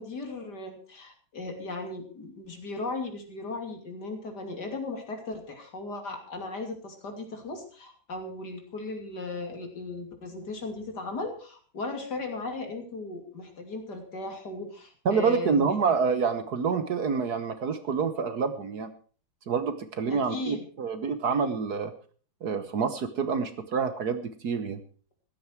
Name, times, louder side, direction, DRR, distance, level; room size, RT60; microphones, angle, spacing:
voice 1, 0.0-15.9 20.1-20.6, left 3 dB, 55° left, 5 dB, 3.4 m, -37 dB
voice 2, 15.0-18.9 19.5-21.9 22.4-24.8, right 5 dB, 55° right, 10 dB, 1.5 m, -27 dB
15.5 x 13.0 x 4.6 m, 0.41 s
omnidirectional pair, 2.2 m